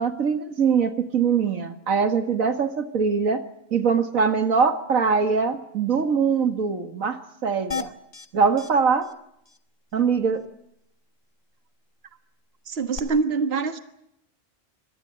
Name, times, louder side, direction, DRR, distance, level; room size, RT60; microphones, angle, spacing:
voice 1, 0.0-3.4 3.7-7.9 8.3-9.1 9.9-10.4, right 5 dB, 90° right, 9 dB, 2.2 m, -22 dB
sound 1, 7.7-8.3 8.6-8.7 9.0-9.1 9.5-9.6 12.9-13.0, left 6 dB, 30° left, 1.3 m, -32 dB
voice 2, 12.7-13.8, right 4 dB, 50° right, 9 dB, 1.7 m, -24 dB
25.5 x 18.5 x 7.8 m, 0.78 s
omnidirectional pair, 1.4 m